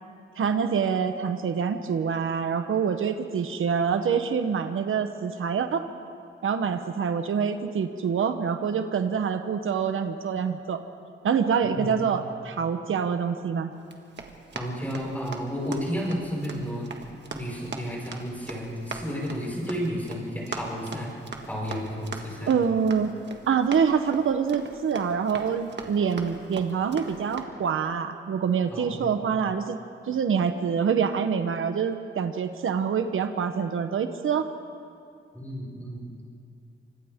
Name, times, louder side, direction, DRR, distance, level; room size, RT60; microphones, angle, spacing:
voice 1, 0.4-5.9 6.4-10.8 11.2-13.7 22.5-23.1 23.5-29.8 30.1-34.5, right 6 dB, 85° right, 8 dB, 1.0 m, -26 dB
voice 2, 11.6-12.1 14.5-16.9 17.3-21.1 21.5-22.5 28.7-29.2 35.3-36.2, equal, 10° left, -5 dB, 5.7 m, -32 dB
Run, 13.8-27.4, right 4 dB, 60° right, 1.7 m, -41 dB
29.0 x 25.0 x 3.7 m, 2.4 s
wide cardioid pair, 170°, 21 cm